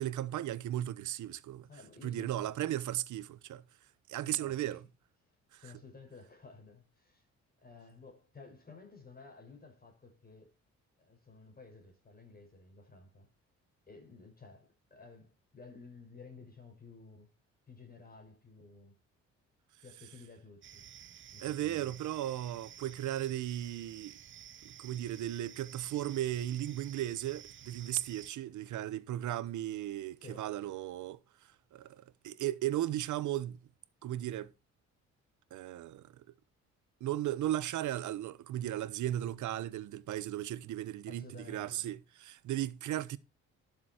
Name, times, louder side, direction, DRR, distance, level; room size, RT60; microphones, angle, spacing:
voice 1, 0.0-1.7 2.0-3.6 4.1-4.8 5.5-5.6 21.4-24.2 24.6-33.6 34.0-34.5 35.5-36.2 37.0-43.2, right 13 dB, 75° right, 0.9 m, -36 dB
voice 2, 1.7-2.5 4.2-4.6 5.6-7.2 7.6-10.5 11.0-13.3 13.9-17.3 17.7-18.9 19.8-20.9 21.3-22.0 30.2-30.5 41.1-41.9, left 4 dB, 30° left, 5.6 m, -54 dB
sound 1, 20.6-28.3, right 9 dB, 40° right, 0.6 m, -52 dB
12.5 x 7.2 x 4.4 m
cardioid pair, 90°, 30 cm